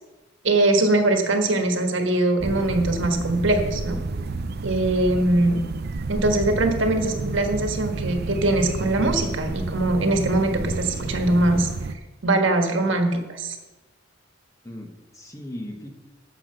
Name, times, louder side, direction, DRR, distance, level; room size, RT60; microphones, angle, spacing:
voice 1, 0.4-4.0 4.6-5.6 6.1-11.7 12.2-13.6, right 2 dB, 70° right, 4 dB, 1.4 m, -22 dB
sound 1, 2.4-11.9, right 3 dB, 50° right, 0.5 m, -30 dB
voice 2, 14.6-15.9, left 1 dB, 15° left, 3 dB, 1.2 m, -38 dB
9.6 x 6.3 x 6.6 m, 1.1 s
head